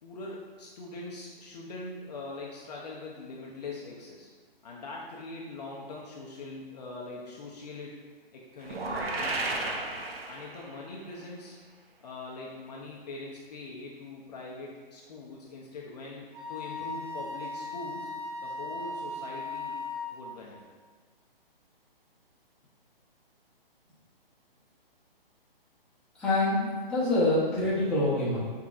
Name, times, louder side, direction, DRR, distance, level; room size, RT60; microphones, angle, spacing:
voice 1, 0.0-4.3 4.6-7.9 8.3-9.8 10.3-11.5 12.0-18.1 18.4-19.8 20.1-20.6, left 3 dB, 45° left, -3 dB, 0.6 m, -42 dB
sound 1, 8.6-10.8, right 2 dB, 80° right, 0.7 m, -33 dB
Wind instrument woodwind instrument, 16.3-20.2, left 2 dB, 30° right, 0.8 m, -37 dB
voice 2, 26.2-28.4, left 1 dB, 5° left, -11 dB, 1.0 m, -26 dB
5.7 x 3.6 x 2.4 m, 1.5 s
hypercardioid pair, 150°, 30 cm